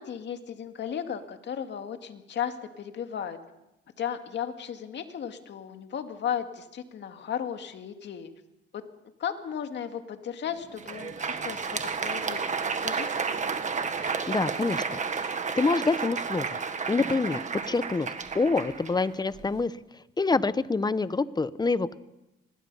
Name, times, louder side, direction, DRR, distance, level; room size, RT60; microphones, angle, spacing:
voice 1, 0.0-3.4 4.0-8.3 8.7-8.8 9.2-13.1, left 8 dB, 65° left, 6 dB, 2.2 m, -35 dB
Crowd, 10.6-19.6, right 5 dB, 40° right, 1.7 m, -32 dB
voice 2, 14.3-16.6 16.9-18.1 18.3-19.7 20.2-22.0, left 3 dB, 20° left, 15 dB, 0.9 m, -26 dB
25.5 x 20.0 x 5.6 m, 0.92 s
cardioid pair, 90°, 20 cm